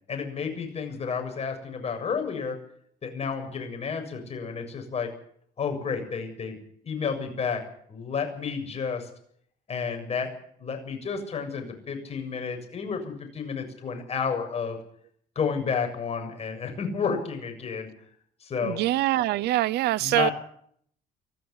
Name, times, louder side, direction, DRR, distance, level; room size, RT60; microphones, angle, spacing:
voice 1, 0.1-2.6 3.0-5.1 5.6-6.6 6.8-7.6 7.9-9.1 9.7-10.3 10.6-14.8 15.4-17.9 18.4-18.8 20.0-20.3, left 6 dB, 40° left, 7.2 m, -31 dB
voice 2, 18.6-20.3, right 16 dB, 80° right, 0.7 m, -24 dB
24.5 x 15.0 x 7.2 m
cardioid pair, 110°, 17 cm